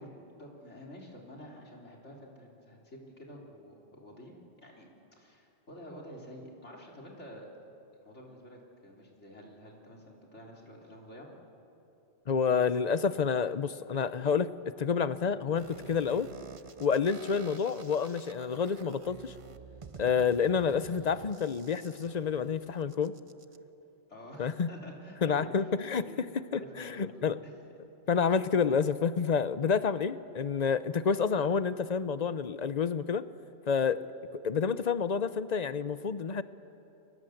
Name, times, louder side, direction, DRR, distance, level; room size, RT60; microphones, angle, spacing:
voice 1, 0.0-7.5 8.0-11.3 24.1-25.5 26.0-26.2 26.5-27.1 27.4-27.6, equal, 70° left, -1 dB, 3.9 m, -49 dB
voice 2, 12.3-16.3 16.8-19.3 20.0-23.1 24.4-24.7 25.2-26.3 26.5-27.4 28.1-33.3 33.7-34.0 34.3-36.4, left 6 dB, 40° left, 14 dB, 0.7 m, -29 dB
sound 1, 15.6-23.6, right 6 dB, 35° right, 0.6 m, -50 dB
30.0 x 23.0 x 7.9 m, 2.9 s
omnidirectional pair, 1.2 m